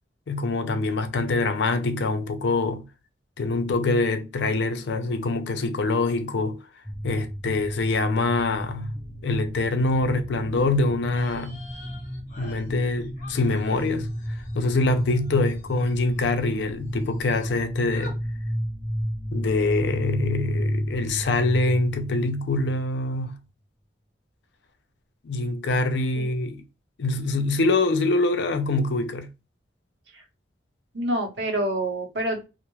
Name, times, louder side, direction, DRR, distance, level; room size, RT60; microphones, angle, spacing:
voice 1, 0.3-2.9 3.4-6.6 7.0-9.0 9.2-11.6 12.4-18.2 19.3-23.4 25.2-26.6 27.0-29.3, left 2 dB, 70° left, 0.4 m, -25 dB
sound 1, 6.8-22.8, equal, 5° left, 0.3 m, -32 dB
sound 2, 11.0-16.6 16.9-17.6 17.9-18.2, left 2 dB, 40° left, 0.7 m, -49 dB
voice 2, 30.9-32.5, right 1 dB, 75° right, 0.7 m, -27 dB
2.3 x 2.0 x 2.9 m
head